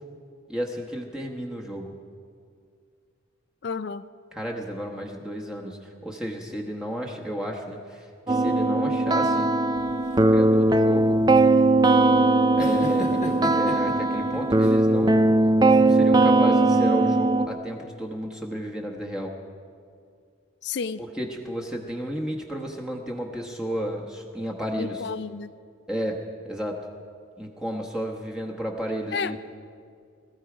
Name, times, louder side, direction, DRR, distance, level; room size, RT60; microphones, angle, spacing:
voice 1, 0.5-1.9 4.3-9.5 10.2-11.2 12.6-15.2 15.6-19.4 21.0-25.1 25.9-26.9 27.4-29.4, equal, 5° right, -1 dB, 1.0 m, -32 dB
voice 2, 3.6-4.1 20.6-21.0 24.8-25.5 29.1-29.4, left 5 dB, 55° left, 14 dB, 0.4 m, -31 dB
sound 1, 8.3-17.5, right 2 dB, 20° right, 0.4 m, -19 dB
sound 2, 9.8-15.3, left 1 dB, 40° left, 1.1 m, -39 dB
20.5 x 14.0 x 5.0 m, 2.2 s
head